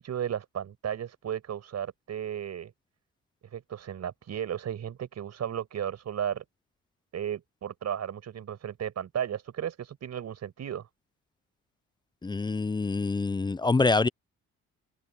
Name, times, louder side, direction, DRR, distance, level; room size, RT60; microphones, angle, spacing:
voice 1, 0.0-2.7 3.5-6.4 7.1-10.9, right 9 dB, 60° right, 5.5 m, -34 dB
voice 2, 12.2-14.1, left 3 dB, 15° left, 0.5 m, -25 dB
cardioid pair, 90°, 30 cm